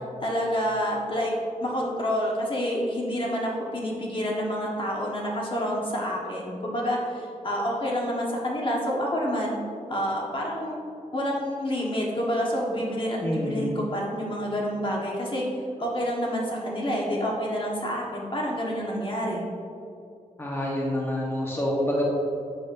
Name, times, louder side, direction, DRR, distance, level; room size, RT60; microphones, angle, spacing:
voice 1, 0.2-1.3 1.6-9.6 9.9-10.8 11.1-15.5 15.8-19.4, equal, 40° left, -3 dB, 1.4 m, -28 dB
voice 2, 13.2-13.9 20.4-22.1, left 1 dB, 20° left, -4 dB, 1.2 m, -27 dB
7.8 x 7.2 x 2.6 m, 2.6 s
wide cardioid pair, 90°, 13 cm